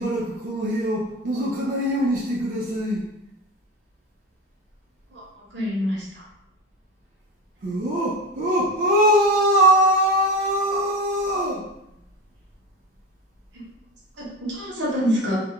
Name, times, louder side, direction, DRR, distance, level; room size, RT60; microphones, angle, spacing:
voice 1, 0.0-3.0 7.6-11.6, right 1 dB, 45° right, -5 dB, 0.4 m, -21 dB
voice 2, 5.5-6.3 14.2-15.4, equal, 80° right, -4 dB, 0.9 m, -26 dB
2.3 x 2.1 x 2.7 m, 0.83 s
head